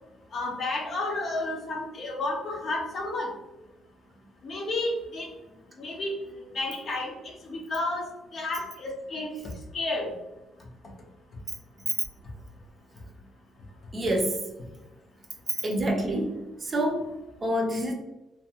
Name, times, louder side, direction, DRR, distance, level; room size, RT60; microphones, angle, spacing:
voice 1, 0.3-3.3 4.4-5.3 5.8-6.1 6.5-7.1 7.4-8.1 8.3-9.3 9.7-10.1, left 2 dB, 55° left, 0 dB, 0.7 m, -31 dB
voice 2, 13.9-14.4 15.6-16.3 16.6-17.1 17.4-17.9, right 1 dB, 35° right, 2 dB, 0.6 m, -26 dB
2.5 x 2.2 x 2.7 m, 1.0 s
cardioid pair, 90°, 0 cm